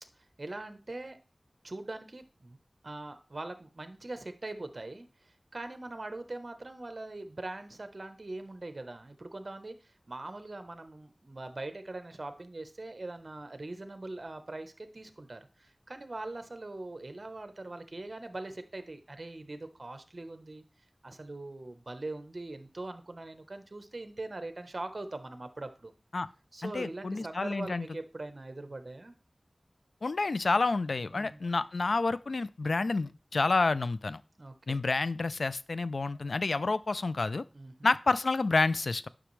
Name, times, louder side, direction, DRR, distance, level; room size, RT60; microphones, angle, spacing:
voice 1, 0.4-1.2 1.6-2.6 2.8-20.6 21.0-25.9 26.5-29.1 31.1-31.4 34.4-34.8 37.5-37.9, right 2 dB, 55° right, 9 dB, 1.0 m, -42 dB
voice 2, 26.6-27.9 30.0-34.2 34.7-37.4 37.8-39.1, left 3 dB, 90° left, 16 dB, 0.3 m, -29 dB
10.0 x 6.1 x 3.2 m, 0.33 s
wide cardioid pair, 65°, 0 cm